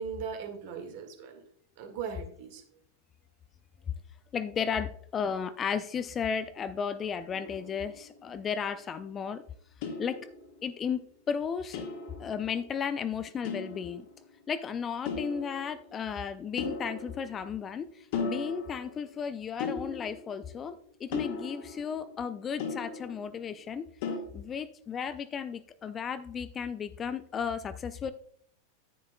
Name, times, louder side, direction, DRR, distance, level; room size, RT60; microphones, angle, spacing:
voice 1, 0.0-1.4 1.8-2.6, right 6 dB, 50° right, 4 dB, 1.8 m, -38 dB
voice 2, 4.3-9.4 10.0-10.3 10.6-11.8 12.2-14.1 14.5-23.9 24.3-28.1, left 7 dB, 25° left, 13 dB, 0.4 m, -34 dB
sound 1, 7.3-8.3 9.8-10.8 11.7-13.0 13.4-14.4 15.0-16.1 16.6-17.8 18.1-19.2 19.6-20.6 21.1-23.5 24.0-24.2, left 4 dB, 50° left, 1.7 m, -38 dB
10.0 x 9.4 x 2.3 m, 0.63 s
figure-of-eight pair, 90°, 0 cm